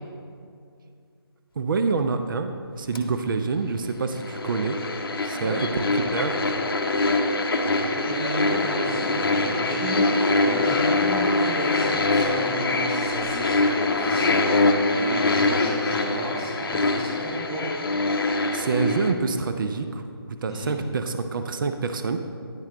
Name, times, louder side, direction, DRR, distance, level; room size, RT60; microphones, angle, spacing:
voice 1, 1.6-4.8 5.2-6.3 18.5-20.0 20.4-22.2, right 4 dB, 55° right, 8 dB, 0.4 m, -27 dB
sound 1, 2.9-3.0 4.1-19.1, left 2 dB, 60° left, 0.6 m, -24 dB
voice 2, 5.3-5.7 7.8-17.7 20.5-20.8, right 1 dB, 15° right, -7 dB, 0.8 m, -33 dB
9.6 x 4.3 x 3.8 m, 2.4 s
figure-of-eight pair, 155°, 13 cm